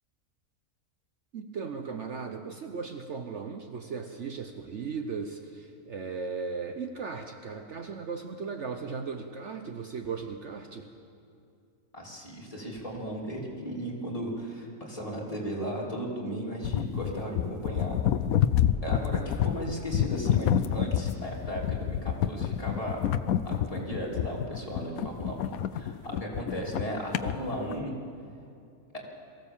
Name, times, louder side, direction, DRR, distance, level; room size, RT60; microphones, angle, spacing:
voice 1, 1.3-10.9, right 5 dB, 55° right, 5 dB, 1.1 m, -37 dB
voice 2, 11.9-18.0 18.8-23.0 23.4-27.9, equal, 25° left, -4 dB, 3.3 m, -36 dB
sound 1, 16.6-27.8, left 10 dB, 75° left, 1.1 m, -28 dB
23.0 x 15.5 x 7.3 m, 2.4 s
omnidirectional pair, 1.5 m